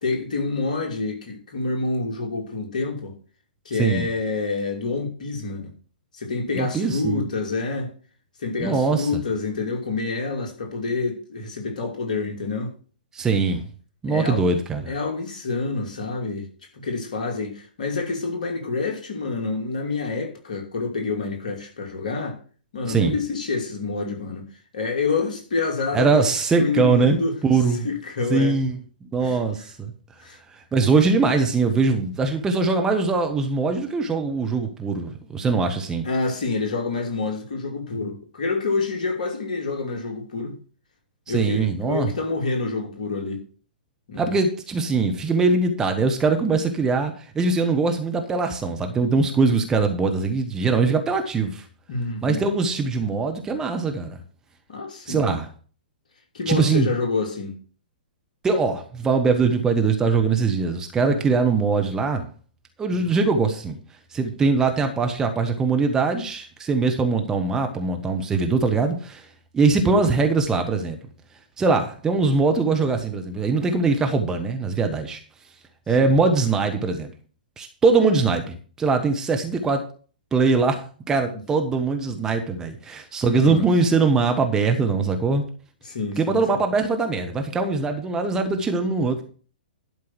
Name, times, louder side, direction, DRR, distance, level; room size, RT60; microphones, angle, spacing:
voice 1, 0.0-3.1 3.6-5.7 6.1-7.9 8.4-12.7 14.1-14.6 14.9-16.5 16.7-22.4 22.7-24.5 24.7-26.3 26.6-27.4 27.8-28.6 29.2-29.4 30.2-30.4 36.0-40.6 41.3-43.4 44.1-44.4 51.9-52.4 54.7-55.4 56.3-57.6 61.0-61.2 62.9-63.0 69.8-70.0 76.0-76.1 83.2-83.6 85.8-86.6, left 3 dB, 55° left, 2.7 m, -27 dB
voice 2, 6.5-7.3 8.6-9.1 13.1-13.6 14.0-14.9 22.9-23.2 25.9-27.9 28.3-28.8 29.1-29.9 30.7-36.1 41.3-42.1 44.2-51.6 52.2-54.2 55.1-55.5 56.5-56.9 58.4-62.3 62.8-63.8 64.1-69.3 69.5-71.0 71.6-75.2 75.9-77.1 77.6-79.9 80.3-85.4 86.2-89.2, right 4 dB, 10° right, 1.3 m, -22 dB
11.5 x 5.2 x 6.2 m
figure-of-eight pair, 115°, 5 cm